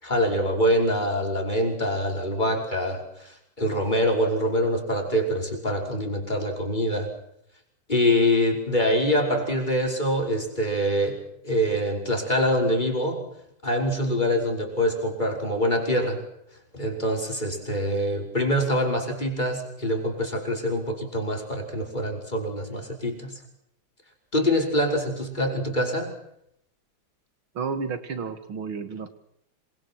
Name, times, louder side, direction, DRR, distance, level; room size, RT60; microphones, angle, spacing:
voice 1, 0.0-7.1 7.9-11.2 11.4-13.3 13.6-16.2 16.7-23.3 24.3-26.1, equal, 20° left, 2 dB, 5.8 m, -25 dB
voice 2, 27.5-29.1, right 5 dB, 70° right, 10 dB, 2.8 m, -31 dB
27.5 x 25.5 x 6.2 m, 0.75 s
omnidirectional pair, 2.3 m